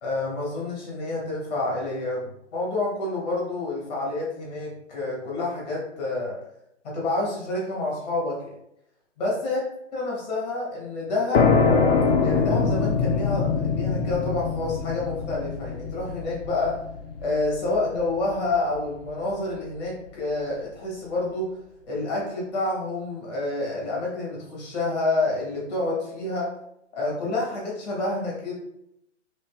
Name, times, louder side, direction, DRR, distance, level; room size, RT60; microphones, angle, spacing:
voice 1, 0.0-6.4 6.8-8.4 9.2-9.6 9.9-11.6 12.2-16.7 17.2-21.6 21.9-26.5 26.9-28.5, left 2 dB, 35° left, -4 dB, 1.6 m, -28 dB
sound 1, 11.3-18.7, left 5 dB, 50° left, 0.6 m, -24 dB
4.2 x 3.2 x 3.4 m, 0.79 s
hypercardioid pair, 165°, 37 cm